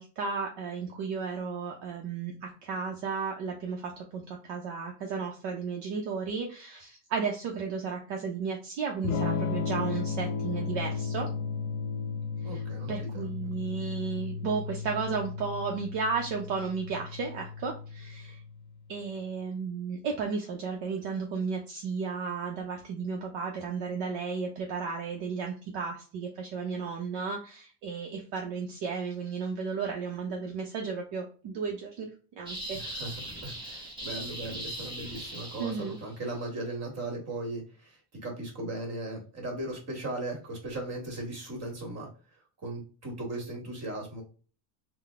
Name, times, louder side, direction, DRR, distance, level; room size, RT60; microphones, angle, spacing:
voice 1, 0.0-11.3 12.5-12.6 12.9-18.4 18.9-32.1 32.4-32.8 35.6-36.0, right 5 dB, 60° right, 0 dB, 0.8 m, -34 dB
Electric guitar / Strum, 9.0-18.8, left 5 dB, 45° left, 0.5 m, -34 dB
voice 2, 12.4-13.3 32.7-42.1 42.6-44.2, right 2 dB, 30° right, 1 dB, 1.7 m, -37 dB
sound 1, 32.5-36.1, right 1 dB, 10° right, 1.0 m, -39 dB
3.8 x 2.3 x 3.4 m, 0.38 s
cardioid pair, 155°, 49 cm